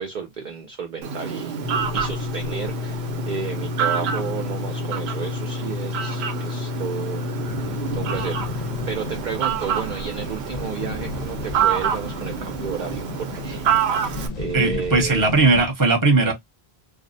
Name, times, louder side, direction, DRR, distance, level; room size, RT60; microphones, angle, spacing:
voice 1, 0.0-7.2 7.6-15.3 16.2-16.3, right 6 dB, 55° right, 0.6 m, -32 dB
Fowl, 1.0-14.3, right 8 dB, 90° right, 0.8 m, -28 dB
sound 1, 1.6-8.9, left 7 dB, 90° left, 0.9 m, -31 dB
sound 2, 1.6-15.7, left 3 dB, 50° left, 0.7 m, -36 dB
voice 2, 14.5-16.3, right 3 dB, 20° right, 0.8 m, -18 dB
2.4 x 2.0 x 2.6 m
omnidirectional pair, 1.0 m